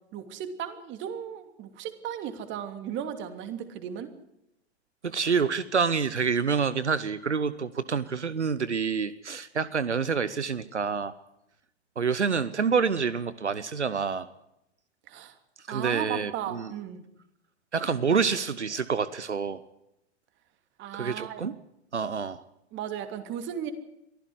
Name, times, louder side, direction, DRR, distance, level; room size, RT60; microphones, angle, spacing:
voice 1, 0.1-4.1 15.1-15.4 15.7-17.0 20.8-21.4 22.7-23.7, right 9 dB, 35° right, 9 dB, 2.9 m, -35 dB
voice 2, 5.0-11.1 12.0-14.3 15.7-16.7 17.7-19.6 20.9-21.5 21.9-22.4, right 5 dB, 85° right, 16 dB, 1.0 m, -27 dB
23.5 x 15.0 x 7.9 m, 0.84 s
figure-of-eight pair, 100°, 34 cm